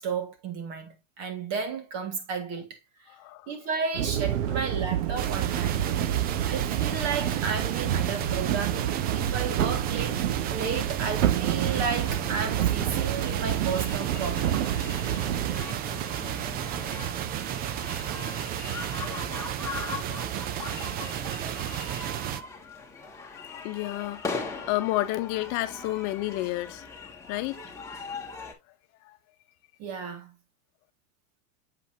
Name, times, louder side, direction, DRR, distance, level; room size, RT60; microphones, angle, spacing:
voice 1, 0.0-3.1 3.5-5.8 6.5-10.2 10.5-14.6 29.8-30.3, right 5 dB, 45° right, 2.2 m, -33 dB
voice 2, 3.1-3.5 23.4-27.6 29.0-29.2, left 18 dB, 50° left, 0.9 m, -31 dB
sound 1, 3.9-15.6, right 10 dB, 75° right, 1.0 m, -29 dB
sound 2, 5.2-22.4, right 11 dB, 25° right, 0.4 m, -33 dB
sound 3, 11.6-28.5, left 4 dB, 5° left, 1.8 m, -40 dB
7.9 x 5.4 x 2.8 m
supercardioid pair, 140°, 38 cm